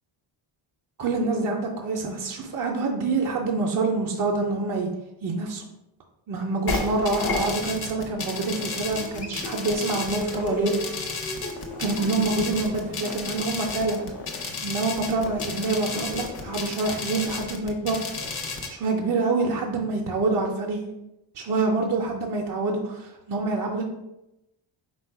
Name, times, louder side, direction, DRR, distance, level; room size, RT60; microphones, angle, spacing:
voice 1, 1.0-4.9 5.2-5.6 6.3-10.7 11.8-14.0 14.6-18.0 18.7-20.9 21.4-23.8, right 3 dB, 45° right, -1 dB, 0.5 m, -26 dB
sound 1, 6.7-18.7, left 4 dB, 50° left, 0.7 m, -32 dB
Human voice / Acoustic guitar, 8.9-16.9, left 2 dB, 20° left, 0.3 m, -39 dB
4.1 x 2.3 x 4.5 m, 0.91 s
wide cardioid pair, 170°, 49 cm